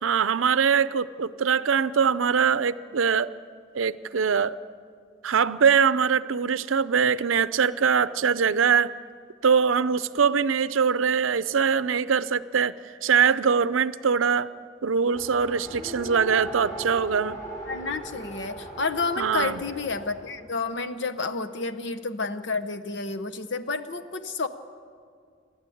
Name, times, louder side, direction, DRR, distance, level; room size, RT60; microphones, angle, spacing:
voice 1, 0.0-3.3 3.7-4.6 5.2-9.0 9.4-12.7 13.0-14.5 14.8-17.4 19.2-19.6, right 6 dB, 90° right, 15 dB, 0.6 m, -22 dB
Race car auto racing, 15.1-20.4, right 1 dB, 20° left, 4.2 m, -39 dB
voice 2, 17.7-24.5, left 4 dB, 60° left, 10 dB, 0.9 m, -30 dB
28.5 x 12.0 x 8.5 m, 2.2 s
head